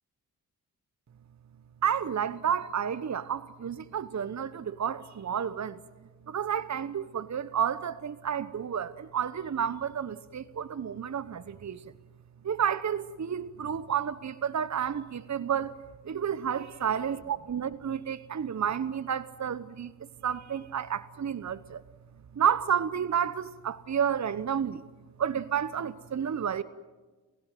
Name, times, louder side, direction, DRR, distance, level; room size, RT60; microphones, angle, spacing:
voice 1, 1.8-5.8 6.3-11.8 12.4-15.8 16.0-19.9 20.2-21.8 22.3-24.8 25.2-26.6, right 8 dB, 40° right, 1.1 m, -31 dB
29.0 x 16.5 x 9.2 m
hypercardioid pair, 40°, 45 cm